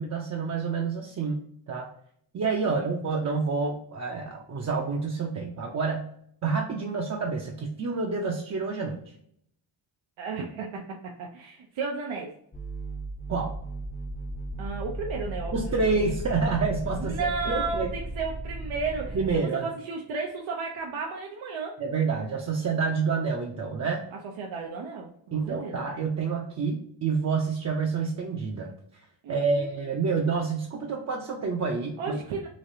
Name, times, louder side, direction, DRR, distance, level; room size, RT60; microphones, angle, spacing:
voice 1, 0.0-1.9 2.3-6.1 6.4-9.1 13.3-13.5 15.5-17.9 19.1-19.7 21.8-24.0 25.3-32.2, right 4 dB, 35° right, 0 dB, 0.5 m, -28 dB
voice 2, 10.2-10.8 11.2-12.3 14.6-15.8 17.0-19.2 19.6-21.8 24.4-25.9 29.2-29.7 32.0-32.5, right 4 dB, 90° right, 0 dB, 0.6 m, -33 dB
sound 1, 12.5-19.4, right 1 dB, 20° left, 0.6 m, -35 dB
3.1 x 2.4 x 2.6 m, 0.68 s
cardioid pair, 90°, 46 cm